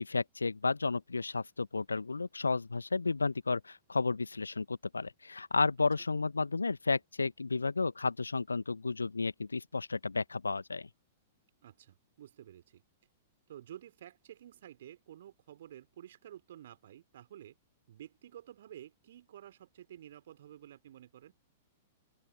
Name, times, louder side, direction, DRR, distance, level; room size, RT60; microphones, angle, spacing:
voice 1, 0.0-10.9, left 4 dB, 75° left, 1.4 m, -32 dB
voice 2, 11.6-12.8 13.5-17.6 17.9-21.3, right 11 dB, 55° right, 3.8 m, -51 dB
open air
figure-of-eight pair, 100°, 0 cm